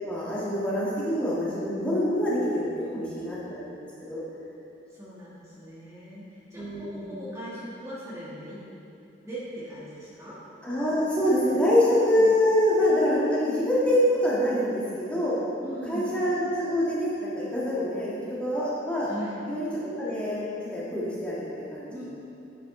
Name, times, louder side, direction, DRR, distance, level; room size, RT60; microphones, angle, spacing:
voice 1, 0.0-4.2 6.5-7.2 10.6-15.4 15.9-18.1 18.4-19.1 19.5-22.0, left 1 dB, 5° left, -9 dB, 1.7 m, -25 dB
voice 2, 2.8-3.1 5.0-8.6 9.2-10.4 12.1-12.3 15.6-16.1 19.0-19.4 21.9-22.0, equal, 15° right, -9 dB, 1.5 m, -40 dB
9.4 x 7.3 x 3.7 m, 2.8 s
head